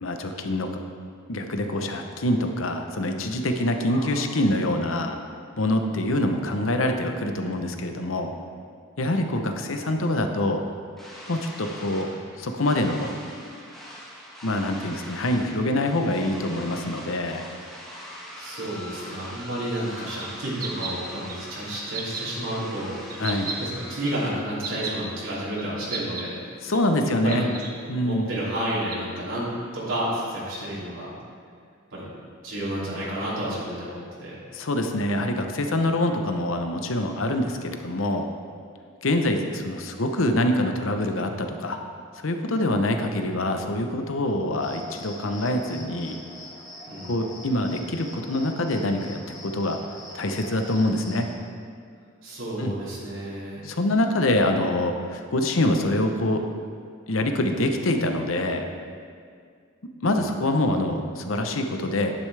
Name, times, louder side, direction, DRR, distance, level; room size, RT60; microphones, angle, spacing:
voice 1, 0.0-0.7 1.3-5.2 5.6-8.3 9.0-10.6 11.3-12.1 12.4-13.1 14.4-17.4 23.2-23.5 26.6-27.5 27.9-28.3 34.5-38.3 39.0-41.8 42.2-46.2 47.1-49.8 50.1-51.3 52.6-52.7 53.6-56.4 57.1-58.6 60.0-62.1, left 1 dB, 85° left, 5 dB, 0.9 m, -25 dB
voice 2, 3.9-4.2 18.3-22.9 23.3-26.4 27.0-27.5 28.0-31.1 31.9-32.1 32.4-34.4 46.9-47.2 52.2-53.6 60.0-60.2, right 1 dB, 80° right, -8 dB, 2.9 m, -31 dB
sound 1, 11.0-24.3, equal, ahead, 1.5 m, -42 dB
sound 2, 20.2-20.3 20.6-20.9 21.3-21.4 21.9-22.3 23.1-23.6 24.1-24.2 24.6-24.9 25.6-25.7 25.9-26.2 26.7-26.8 27.3-27.7 28.3-28.4 28.9-29.0, right 5 dB, 45° right, 1.0 m, -33 dB
Cricket, 44.6-51.3, left 1 dB, 25° left, 2.7 m, -43 dB
11.0 x 10.0 x 3.4 m, 2.2 s
head